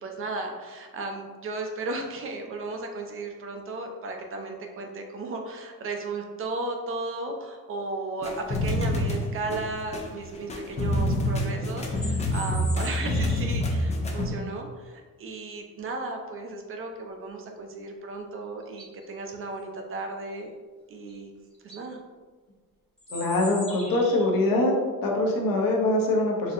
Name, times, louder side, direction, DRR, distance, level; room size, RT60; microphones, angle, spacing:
voice 1, 0.0-20.5 20.9-21.3 21.6-22.0, right 3 dB, 40° right, 3 dB, 0.4 m, -35 dB
sound 1, 8.2-14.3, left 1 dB, 20° left, 0.4 m, -27 dB
sound 2, 11.8-13.6 18.1-18.2 18.6-19.1 21.1-21.2 21.5-21.8 23.0-24.4, left 1 dB, 5° left, 0.8 m, -41 dB
voice 2, 23.1-24.8 25.0-26.5, left 2 dB, 75° left, 0 dB, 0.8 m, -23 dB
4.1 x 2.7 x 2.5 m, 1.4 s
cardioid pair, 145°, 34 cm